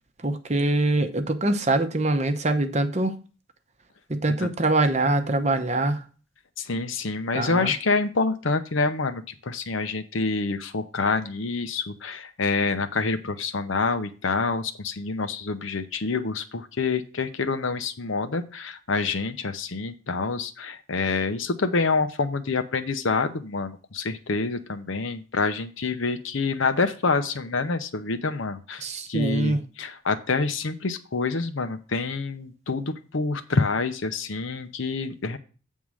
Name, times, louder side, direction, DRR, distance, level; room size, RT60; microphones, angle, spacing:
voice 1, 0.2-3.1 4.1-6.0 7.3-7.7 28.8-29.6, right 2 dB, 35° right, 0.7 m, -24 dB
voice 2, 6.6-28.8 29.1-35.4, left 4 dB, 75° left, 0.8 m, -27 dB
8.5 x 3.7 x 6.2 m
head